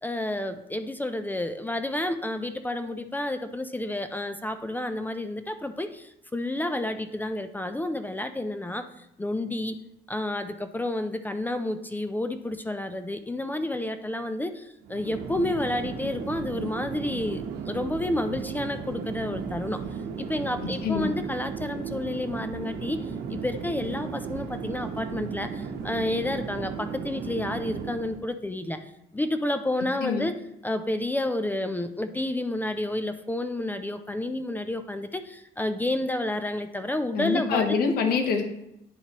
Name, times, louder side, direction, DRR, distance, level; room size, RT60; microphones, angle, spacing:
voice 1, 0.0-9.8 10.1-19.8 20.2-23.0 23.3-28.8 29.1-30.4 30.6-37.8, left 1 dB, 10° left, 9 dB, 0.4 m, -30 dB
Chatter / Fixed-wing aircraft airplane, 14.8-28.2, right 6 dB, 80° right, 0.9 m, -35 dB
voice 2, 37.2-38.4, left 5 dB, 65° left, 4 dB, 0.9 m, -25 dB
10.5 x 4.3 x 3.0 m, 0.82 s
cardioid pair, 110°, 17 cm